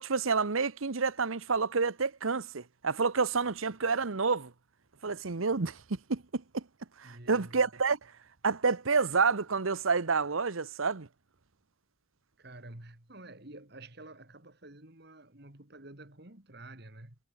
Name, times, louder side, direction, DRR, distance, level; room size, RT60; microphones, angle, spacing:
voice 1, 0.0-4.5 5.0-6.6 7.0-8.1 8.4-11.1, right 4 dB, 85° right, 1.1 m, -29 dB
voice 2, 7.0-7.6 12.4-17.2, right 2 dB, 55° right, 2.8 m, -49 dB
head